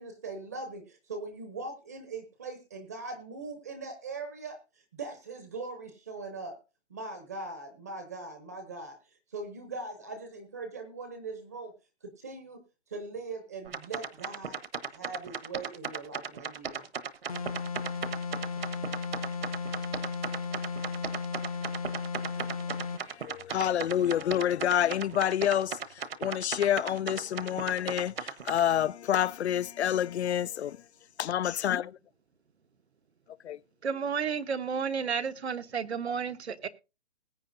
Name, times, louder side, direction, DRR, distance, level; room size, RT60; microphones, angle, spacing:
voice 1, 0.0-4.6 5.0-6.6 6.9-9.0 9.3-11.7 12.0-12.6 12.9-14.6 14.9-16.9, right 3 dB, 15° right, 0.7 m, -40 dB
sound 1, 13.7-28.6, right 6 dB, 65° right, 1.2 m, -36 dB
sound 2, 17.3-23.1, left 5 dB, 35° left, 0.6 m, -35 dB
voice 2, 23.1-30.7 31.2-31.9 33.4-33.6, left 10 dB, 85° left, 0.5 m, -28 dB
voice 3, 33.8-36.7, right 6 dB, 80° right, 1.2 m, -32 dB
20.0 x 8.5 x 2.6 m
hypercardioid pair, 175°, 32 cm